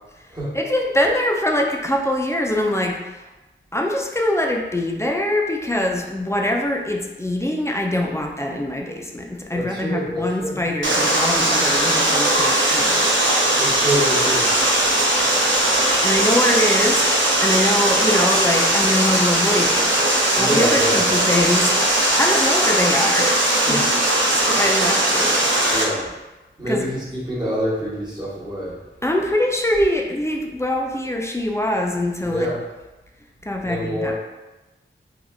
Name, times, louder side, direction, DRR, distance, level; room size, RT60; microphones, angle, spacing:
voice 1, 0.5-3.2 3.7-13.1 16.0-21.7 22.2-23.9 24.2-25.9 26.6-26.9 29.0-32.5 33.4-34.1, left 1 dB, 15° left, 0 dB, 0.4 m, -23 dB
voice 2, 9.5-10.6 13.6-15.0 20.3-21.0 23.7-23.8 25.7-26.1 26.6-28.8 32.2-32.6 33.6-34.1, equal, 20° right, -9 dB, 1.1 m, -26 dB
Water, 10.8-25.8, right 1 dB, 65° right, 0.6 m, -19 dB
3.4 x 2.4 x 2.2 m, 1.1 s
wide cardioid pair, 55°, 21 cm